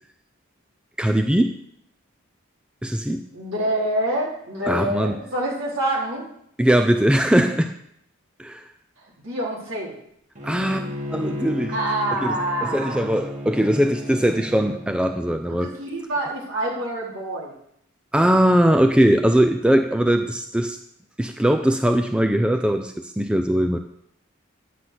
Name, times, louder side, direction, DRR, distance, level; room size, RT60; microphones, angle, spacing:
voice 1, 1.0-1.5 2.8-3.2 4.7-5.2 6.6-7.7 8.4-8.6 10.4-11.7 12.2-12.3 12.6-15.7 18.1-20.8 21.2-23.8, right 1 dB, 5° right, 6 dB, 0.4 m, -20 dB
voice 2, 3.3-6.3 9.2-9.9 11.7-13.2 13.6-13.7 15.5-17.5, right 1 dB, 70° right, -4 dB, 4.0 m, -26 dB
Bowed string instrument, 10.4-14.9, left 1 dB, 35° right, 2.0 m, -33 dB
10.0 x 6.0 x 7.8 m, 0.72 s
head